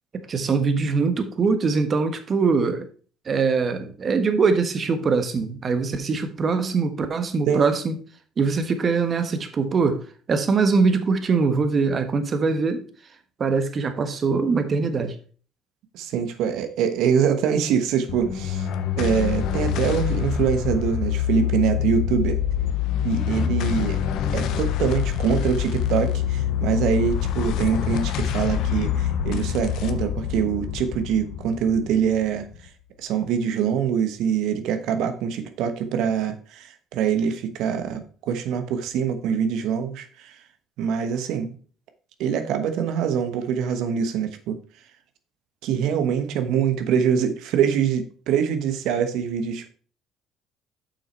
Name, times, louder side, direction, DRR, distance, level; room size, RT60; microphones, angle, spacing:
voice 1, 0.3-2.9 3.2-7.9 8.4-12.9 13.4-15.1, right 4 dB, 40° right, 1.3 m, -22 dB
voice 2, 15.9-18.7 19.0-22.4 23.0-24.0 24.3-32.5 33.0-40.4 40.8-41.5 42.2-44.6 45.6-49.7, right 7 dB, 75° right, 1.1 m, -24 dB
sound 1, 18.1-32.7, left 10 dB, 70° left, 0.8 m, -26 dB
7.2 x 5.9 x 4.4 m
supercardioid pair, 75°, 0 cm